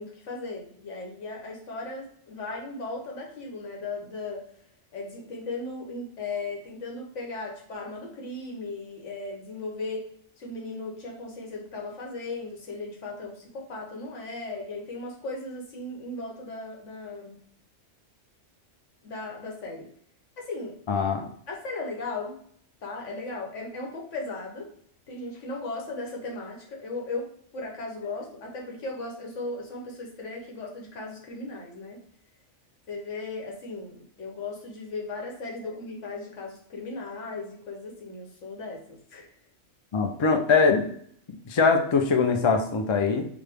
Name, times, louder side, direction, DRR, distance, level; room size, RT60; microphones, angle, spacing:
voice 1, 0.0-4.5 4.9-17.4 19.0-19.9 20.4-20.8 21.5-22.4 22.8-24.7 25.1-32.0 32.9-39.3, left 3 dB, 85° left, 0 dB, 1.3 m, -37 dB
voice 2, 20.9-21.3 39.9-40.9 41.5-43.3, left 4 dB, 50° left, 5 dB, 0.3 m, -22 dB
5.1 x 2.2 x 3.3 m, 0.63 s
omnidirectional pair, 1.2 m